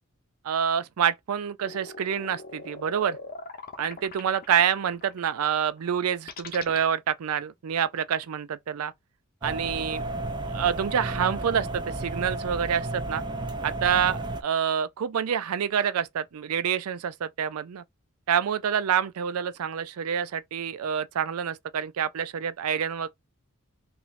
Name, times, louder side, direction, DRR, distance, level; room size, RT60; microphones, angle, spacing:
voice 1, 0.4-3.2 3.8-8.9 9.4-10.0 10.5-13.2 13.6-17.8 18.3-23.1, right 8 dB, 80° right, 0.4 m, -27 dB
sound 1, 1.6-6.8, left 3 dB, 45° left, 0.7 m, -41 dB
sound 2, 9.4-14.4, right 2 dB, 20° right, 0.5 m, -33 dB
3.0 x 2.8 x 3.9 m
head